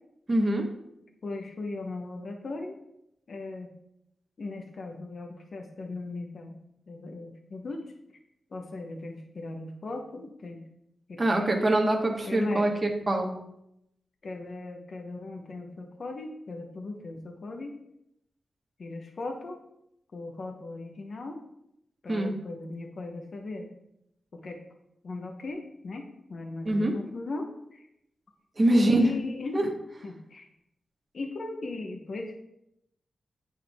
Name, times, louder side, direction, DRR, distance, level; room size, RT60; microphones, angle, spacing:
voice 1, 0.3-0.7 11.2-12.7 13.1-13.3 22.1-22.3 26.6-26.9 28.6-29.1 29.5-29.6, right 1 dB, 30° right, 1 dB, 1.3 m, -23 dB
voice 2, 1.2-2.8 3.3-3.7 4.4-6.6 6.9-7.8 8.5-10.7 11.1-11.5 12.2-12.7 14.2-17.7 18.8-19.6 20.1-21.4 22.0-23.7 24.3-24.6 25.0-27.9 28.8-29.7 30.0-30.5 31.1-32.4, left 2 dB, 60° left, 3 dB, 1.0 m, -38 dB
9.0 x 4.5 x 3.5 m, 0.80 s
cardioid pair, 80°, 0 cm